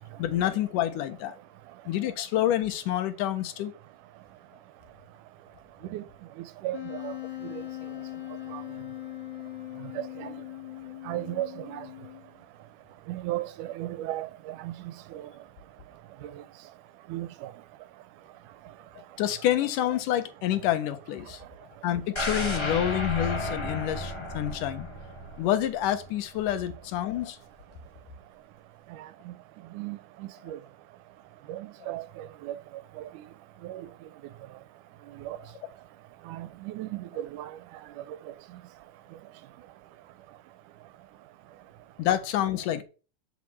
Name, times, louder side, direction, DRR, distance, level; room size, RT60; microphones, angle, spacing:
voice 1, 0.2-1.4 1.9-3.7 19.2-21.4 21.8-24.9 25.4-27.4 42.0-42.8, left 12 dB, 85° left, 2.6 m, -28 dB
voice 2, 6.6-7.1 7.5-7.6 8.5-8.6 10.0-10.3 11.1-11.9 13.1-15.2 17.1-17.5 29.3-29.4 29.7-30.6 31.5-32.6 33.7-33.9 35.3-35.4 36.3-37.5, right 15 dB, 80° right, 2.2 m, -35 dB
Wind instrument woodwind instrument, 6.7-12.4, left 17 dB, 45° left, 2.0 m, -40 dB
Spooky Surge, 22.2-26.1 26.5-26.6, equal, 15° left, 1.2 m, -33 dB
7.3 x 5.7 x 7.6 m
omnidirectional pair, 3.6 m